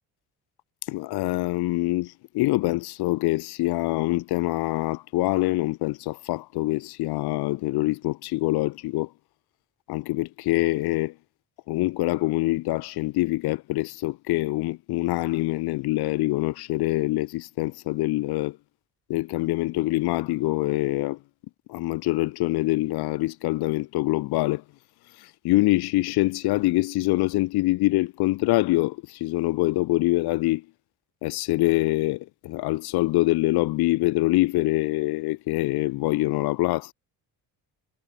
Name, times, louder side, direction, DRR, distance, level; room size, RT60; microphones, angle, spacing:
voice 1, 0.8-9.1 9.9-11.1 11.7-18.6 19.1-21.2 21.7-24.6 25.1-30.6 31.2-36.9, left 19 dB, 85° left, 0.5 m, -25 dB
cardioid pair, 150°, 37 cm